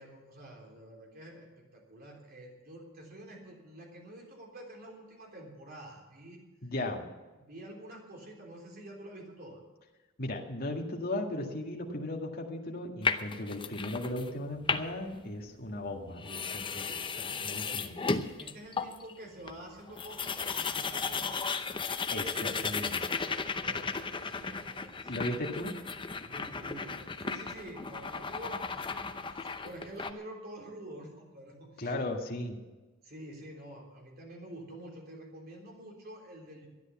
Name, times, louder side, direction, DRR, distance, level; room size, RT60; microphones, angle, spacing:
voice 1, 0.0-1.5 1.7-6.4 7.4-9.6 16.7-16.9 18.4-21.5 23.5-25.1 25.6-25.7 26.1-31.9 33.0-36.7, right 1 dB, 50° right, 0 dB, 3.6 m, -48 dB
voice 2, 6.6-7.0 10.2-18.0 22.1-23.1 25.1-25.7 31.8-32.6, left 1 dB, 45° left, 1 dB, 2.0 m, -36 dB
sound 1, 13.0-14.3 14.6-15.1 15.8-15.9 16.2-19.1 19.5-19.6 19.8-30.1, left 5 dB, 25° left, 0.7 m, -35 dB
13.0 x 11.0 x 7.2 m, 1.2 s
head